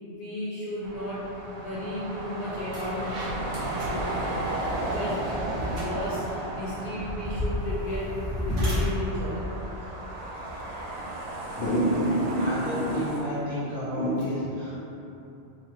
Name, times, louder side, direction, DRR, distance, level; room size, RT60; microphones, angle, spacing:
voice 1, 0.1-1.3 1.6-9.5 11.5-13.1 14.0-14.3, equal, 60° left, -8 dB, 0.7 m, -32 dB
sound 1, 0.8-13.2, right 2 dB, 55° right, 0.4 m, -35 dB
sound 2, 2.0-2.2 2.5-10.8, left 1 dB, 85° right, 1.2 m, -33 dB
voice 2, 12.3-14.7, left 1 dB, 35° right, -13 dB, 1.6 m, -32 dB
3.8 x 3.0 x 3.0 m, 2.8 s
omnidirectional pair, 1.2 m